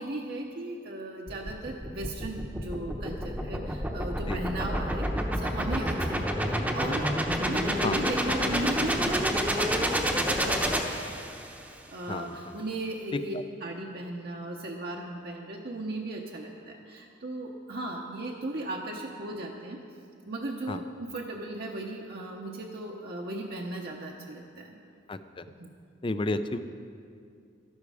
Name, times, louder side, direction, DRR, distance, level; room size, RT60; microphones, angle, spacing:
voice 1, 0.0-7.1 7.4-11.4 11.9-13.3 13.6-19.8 20.2-24.7 25.6-25.7, right 1 dB, 55° right, -1 dB, 0.9 m, -36 dB
sound 1, 1.3-11.6, equal, 10° right, 0.8 m, -29 dB
voice 2, 25.1-25.4 26.0-26.6, left 2 dB, 25° left, 11 dB, 0.4 m, -31 dB
13.0 x 12.0 x 4.9 m, 2.4 s
head